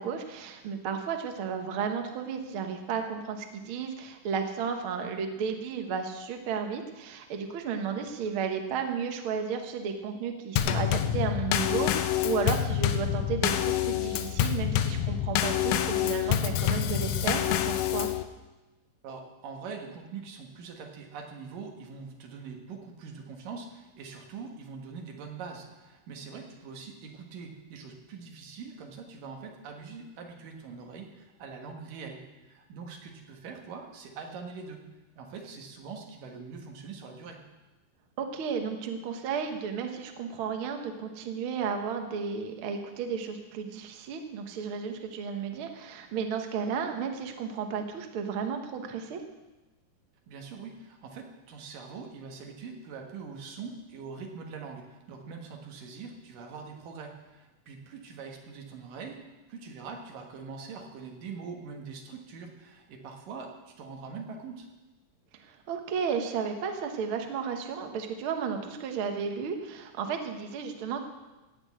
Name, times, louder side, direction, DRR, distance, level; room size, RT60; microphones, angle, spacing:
voice 1, 0.0-18.1 38.2-49.2 65.4-71.0, right 6 dB, 55° right, 5 dB, 1.6 m, -33 dB
Drum kit / Snare drum / Bass drum, 10.6-18.2, left 11 dB, 80° left, 2.2 m, -27 dB
voice 2, 19.0-34.8 35.2-37.4 50.3-64.7, right 5 dB, 80° right, 2 dB, 3.2 m, -43 dB
17.0 x 6.2 x 8.7 m, 1.1 s
omnidirectional pair, 3.8 m